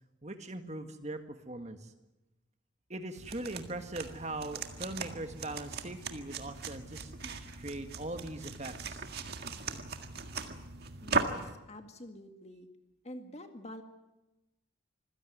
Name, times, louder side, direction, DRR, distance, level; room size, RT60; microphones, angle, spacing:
voice 1, 0.2-1.9 2.9-9.0, right 2 dB, 35° right, 7 dB, 1.8 m, -41 dB
sound 1, 3.2-11.5, right 4 dB, 50° right, 1.8 m, -38 dB
voice 2, 11.0-12.7 13.0-13.8, left 1 dB, 30° left, 6 dB, 2.0 m, -47 dB
26.0 x 16.0 x 9.5 m, 1.0 s
head